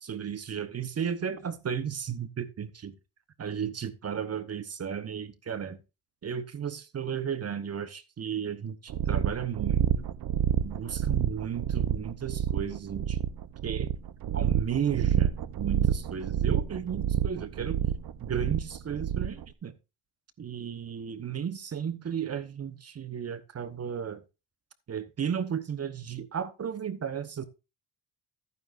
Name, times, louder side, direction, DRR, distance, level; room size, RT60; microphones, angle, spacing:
voice 1, 0.0-2.9 3.4-5.8 6.2-10.1 10.6-13.2 13.6-13.9 14.3-17.8 18.2-19.7 20.4-24.2 24.9-27.4, right 8 dB, 40° right, 1.0 m, -34 dB
sound 1, 8.9-19.4, right 9 dB, 65° right, 0.8 m, -28 dB
14.0 x 9.4 x 2.5 m
cardioid pair, 115°, 38 cm